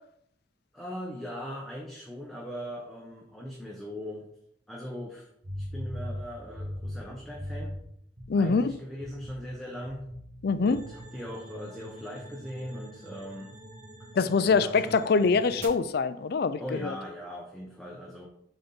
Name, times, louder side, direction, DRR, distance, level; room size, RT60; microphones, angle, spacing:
voice 1, 0.7-4.3 4.7-5.3 5.6-7.7 8.3-10.0 10.6-13.5 14.5-15.1 16.6-18.3, equal, ahead, 0.8 m, -39 dB
sound 1, 5.4-7.8 8.2-8.7 9.0-9.5 9.8-11.0, left 1 dB, 60° right, 2.2 m, -39 dB
voice 2, 8.3-8.7 10.4-10.8 14.2-16.9, left 4 dB, 55° left, 0.4 m, -24 dB
sound 2, 10.7-15.7, right 2 dB, 40° right, 1.1 m, -47 dB
6.9 x 4.1 x 4.0 m
head